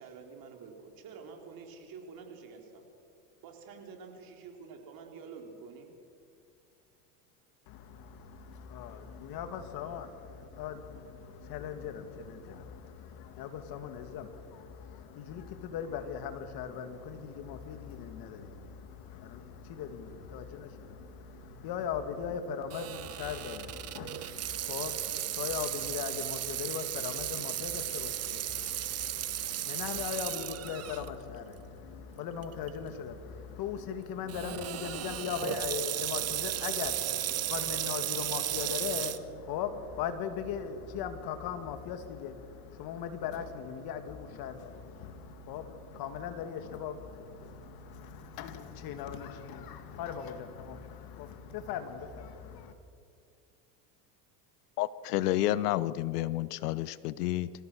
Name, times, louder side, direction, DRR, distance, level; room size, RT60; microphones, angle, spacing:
voice 1, 0.0-2.9 3.4-5.9, right 5 dB, 45° right, 2 dB, 4.1 m, -48 dB
voice 2, 7.7-52.7, left 7 dB, 50° left, 8 dB, 2.3 m, -39 dB
Water tap faucet / Sink (filling or washing), 22.7-31.1 31.6-31.7 32.4-32.7 34.3-39.2, right 12 dB, 30° right, 1.0 m, -35 dB
voice 3, 54.8-57.5, left 15 dB, 75° left, 17 dB, 0.8 m, -30 dB
26.5 x 16.0 x 6.4 m, 2.4 s
supercardioid pair, 110°, 47 cm